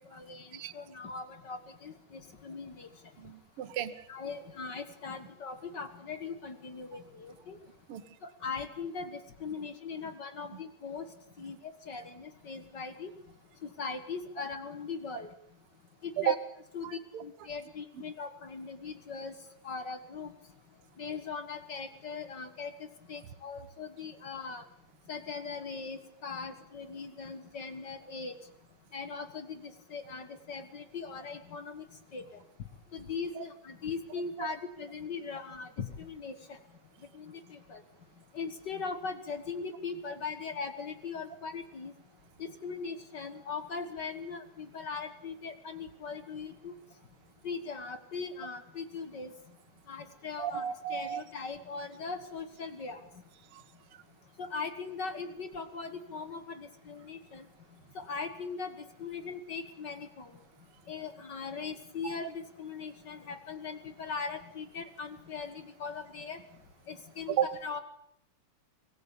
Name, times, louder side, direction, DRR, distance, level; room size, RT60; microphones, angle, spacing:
voice 1, 0.1-2.9 4.1-7.6 8.4-11.0 11.4-11.6 11.9-13.1 13.8-15.3 16.0-16.3 16.7-16.9 17.2-19.3 19.6-20.3 21.0-22.7 23.1-24.6 25.1-28.3 28.9-31.8 32.1-32.2 32.9-36.3 37.1-37.8 38.3-41.9 42.4-46.7 47.4-49.3 49.9-53.0 54.4-57.4 57.9-58.7 59.0-60.3 60.9-66.4 66.9-67.8, left 5 dB, 45° left, 9 dB, 1.7 m, -40 dB
voice 2, 3.2-3.9 7.9-8.0 16.2-16.4 16.8-17.2 34.4-34.5 50.4-51.2 67.3-67.5, right 10 dB, 60° right, 12 dB, 1.9 m, -32 dB
25.0 x 18.5 x 7.1 m, 0.72 s
omnidirectional pair, 3.3 m